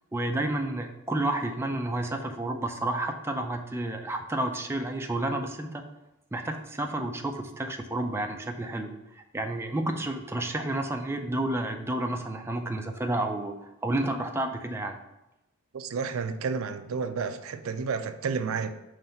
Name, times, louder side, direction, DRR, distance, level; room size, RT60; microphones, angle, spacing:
voice 1, 0.1-5.8 6.3-13.5 13.8-15.0, right 1 dB, 10° right, 0.4 m, -30 dB
voice 2, 15.7-18.7, right 5 dB, 70° right, 0.4 m, -31 dB
5.4 x 3.2 x 5.6 m
head